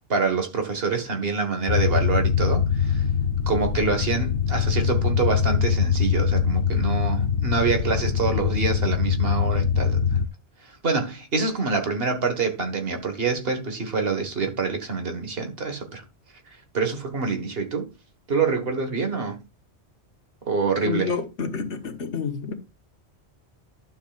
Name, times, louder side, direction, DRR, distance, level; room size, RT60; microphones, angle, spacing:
voice 1, 0.1-3.0 3.5-10.0 10.8-16.0 16.7-17.9 18.3-19.4 20.5-21.1, right 4 dB, 60° right, 1.8 m, -26 dB
sound 1, 1.7-10.3, left 7 dB, 70° left, 0.8 m, -23 dB
voice 2, 20.8-22.5, left 5 dB, 85° left, 1.6 m, -29 dB
11.5 x 6.9 x 2.4 m
omnidirectional pair, 1.1 m